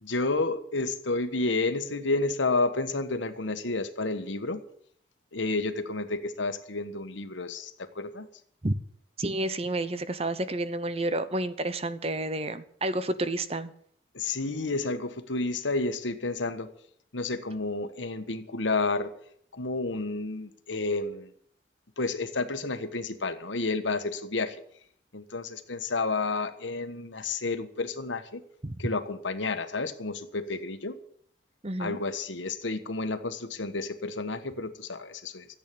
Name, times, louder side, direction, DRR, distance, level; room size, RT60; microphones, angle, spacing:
voice 1, 0.0-4.6 5.3-8.3 14.1-16.7 17.1-19.1 19.5-21.3 22.0-24.6 25.1-28.4 28.8-31.0 31.8-35.5, left 3 dB, 85° left, 10 dB, 1.4 m, -30 dB
voice 2, 9.2-13.7 28.6-28.8 31.6-32.0, right 1 dB, 35° right, 13 dB, 0.9 m, -30 dB
14.0 x 8.3 x 8.5 m, 0.64 s
head